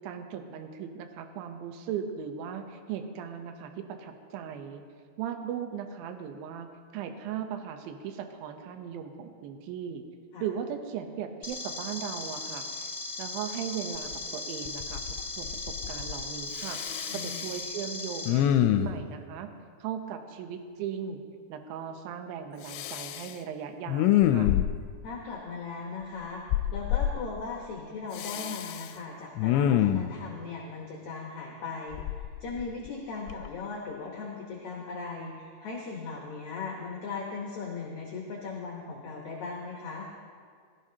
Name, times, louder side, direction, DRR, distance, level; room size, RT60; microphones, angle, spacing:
voice 1, 0.0-4.8 5.2-10.0 10.4-12.9 13.2-16.8 17.1-19.5 19.8-21.2 21.5-24.5, right 8 dB, 75° right, 6 dB, 2.3 m, -38 dB
sound 1, 11.4-18.3, left 3 dB, 20° left, 2.0 m, -37 dB
Respiratory sounds, 14.1-14.2 14.7-15.2 15.5-16.2 16.6-17.6 18.3-19.1 22.7-23.3 23.9-24.9 26.5-27.1 28.2-28.9 29.4-30.1 31.9-32.9 33.3-33.5, left 11 dB, 85° left, 2.6 m, -26 dB
voice 2, 17.1-17.4 25.0-40.1, left 4 dB, 65° left, -1 dB, 1.9 m, -38 dB
16.0 x 16.0 x 2.8 m, 2.1 s
omnidirectional pair, 5.1 m